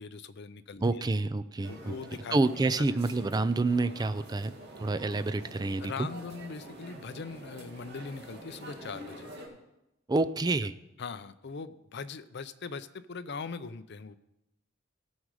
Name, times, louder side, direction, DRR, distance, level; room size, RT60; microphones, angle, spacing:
voice 1, 0.0-1.1 1.7-2.4 5.8-9.3 11.0-14.2, left 5 dB, 55° left, 12 dB, 0.5 m, -41 dB
voice 2, 0.8-2.0 2.3-6.1 10.1-10.7, right 3 dB, 20° right, 13 dB, 0.3 m, -28 dB
sound 1, 1.6-9.5, right 1 dB, 55° right, 2.2 m, -47 dB
16.0 x 6.3 x 4.8 m, 0.90 s
head